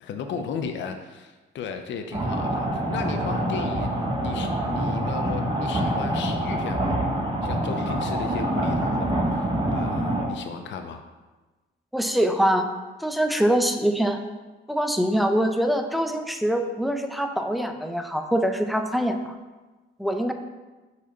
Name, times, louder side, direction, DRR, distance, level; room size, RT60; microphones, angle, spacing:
voice 1, 0.0-3.9 4.2-7.0 7.4-11.0, left 6 dB, 70° left, 6 dB, 0.6 m, -35 dB
sound 1, 2.1-10.2, right 1 dB, 25° right, 1.4 m, -26 dB
voice 2, 11.9-12.7 13.0-14.2 14.7-19.3 20.0-20.3, equal, ahead, 6 dB, 0.6 m, -24 dB
4.8 x 4.7 x 5.4 m, 1.2 s
cardioid pair, 90°, 20 cm